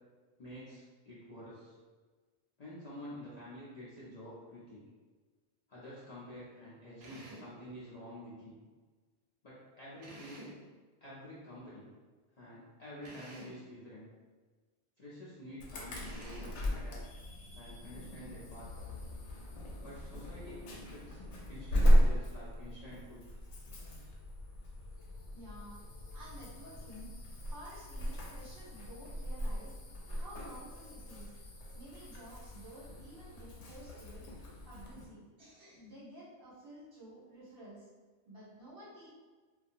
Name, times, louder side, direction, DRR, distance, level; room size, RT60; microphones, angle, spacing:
voice 1, 0.4-1.8 2.6-4.8 5.7-8.6 9.4-10.5 11.0-11.9 12.3-14.1 15.0-16.4 16.7-17.0 17.5-18.7 19.8-23.3, equal, 50° left, -10 dB, 0.5 m, -49 dB
Drill, 7.0-7.5 10.0-10.6 13.0-13.6 16.0-16.6, right 1 dB, 70° right, 0.9 m, -50 dB
Insect / Alarm, 15.6-35.1, equal, 80° left, 0.9 m, -35 dB
voice 2, 25.3-25.8 26.1-27.1 27.4-29.7 30.1-31.3 31.7-34.3 34.6-37.9 38.2-39.2, right 1 dB, 50° right, -10 dB, 1.2 m, -52 dB
2.7 x 2.3 x 2.4 m, 1.4 s
omnidirectional pair, 1.2 m